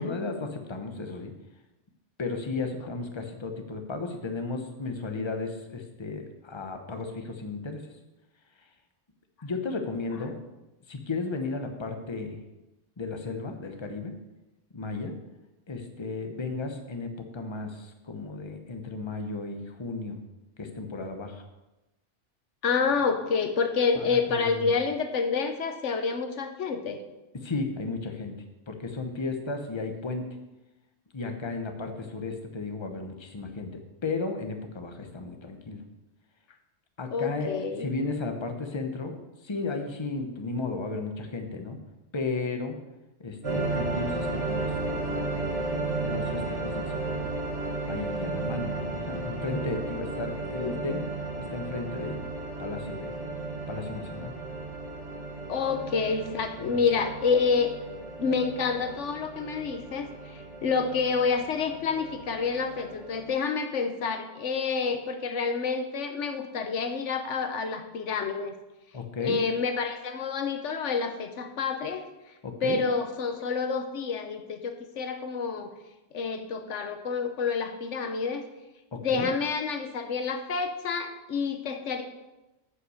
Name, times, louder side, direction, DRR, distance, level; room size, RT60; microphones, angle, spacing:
voice 1, 0.0-1.3 2.2-7.8 9.4-10.4 10.9-12.4 13.0-14.2 14.7-15.1 15.7-20.2 20.6-21.4 24.0-24.7 27.3-28.3 28.7-30.3 31.1-35.8 37.0-37.5 37.8-39.1 39.4-41.8 42.1-42.8 43.2-45.5 45.9-47.3 47.9-51.1 51.4-53.2 53.7-54.3 56.6-56.8 68.9-69.4 72.4-72.8 78.9-79.3, left 3 dB, 25° left, 5 dB, 1.0 m, -34 dB
voice 2, 22.6-27.0 37.1-37.9 50.6-50.8 55.5-57.7 58.2-68.5 69.2-72.0 72.6-75.7 76.1-78.4 78.9-82.0, left 5 dB, 90° left, 7 dB, 1.3 m, -28 dB
sound 1, 43.4-63.2, right 3 dB, 60° right, 2.3 m, -34 dB
9.7 x 5.7 x 6.5 m, 1.0 s
omnidirectional pair, 1.2 m